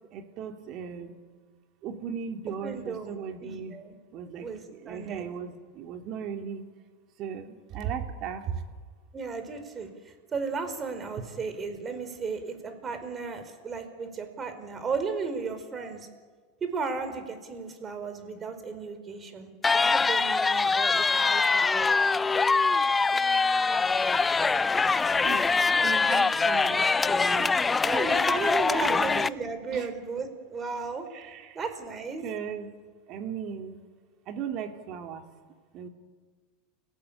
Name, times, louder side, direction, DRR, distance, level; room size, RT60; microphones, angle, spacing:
voice 1, 0.1-1.1 1.8-3.8 4.1-4.5 4.8-6.6 7.2-8.5 25.2-25.5 25.8-27.6 28.9-29.0 29.7-29.9 31.1-31.6 32.2-32.7 33.1-33.9 34.3-35.2 35.7-35.9, right 7 dB, 50° right, 5 dB, 3.1 m, -36 dB
voice 2, 2.6-4.0 4.4-5.3 9.1-16.1 16.6-21.9 27.8-31.1 31.5-32.3, right 4 dB, 30° right, 9 dB, 4.9 m, -35 dB
sound 1, 19.6-29.3, left 4 dB, 20° left, 0.7 m, -24 dB
29.5 x 17.0 x 8.7 m, 1.5 s
hypercardioid pair, 100°, 0 cm